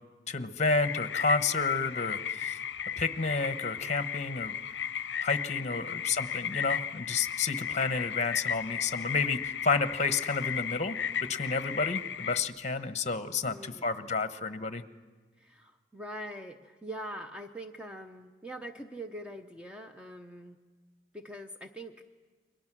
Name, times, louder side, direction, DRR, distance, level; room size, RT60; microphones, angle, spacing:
voice 1, 0.3-2.6 3.0-4.6 5.2-11.0 11.2-14.8, left 4 dB, 40° left, 10 dB, 1.0 m, -30 dB
sound 1, 0.8-12.4, left 8 dB, 65° left, 0.6 m, -35 dB
voice 2, 7.7-8.0 13.4-13.8 15.4-20.6 21.1-22.0, right 1 dB, 5° right, 4 dB, 0.8 m, -43 dB
29.0 x 23.0 x 6.1 m, 1.4 s
head